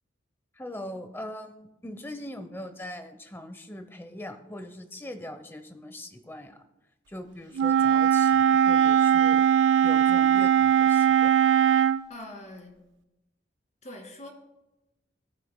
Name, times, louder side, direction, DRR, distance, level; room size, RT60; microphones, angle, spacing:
voice 1, 0.6-6.6 7.1-9.5 9.8-11.4, left 1 dB, 10° left, 8 dB, 0.7 m, -41 dB
Wind instrument woodwind instrument, 7.6-12.0, right 8 dB, 80° right, 0.4 m, -20 dB
voice 2, 12.1-12.7 13.8-14.3, left 1 dB, 40° left, 1 dB, 2.1 m, -42 dB
18.0 x 9.0 x 2.2 m, 0.97 s
head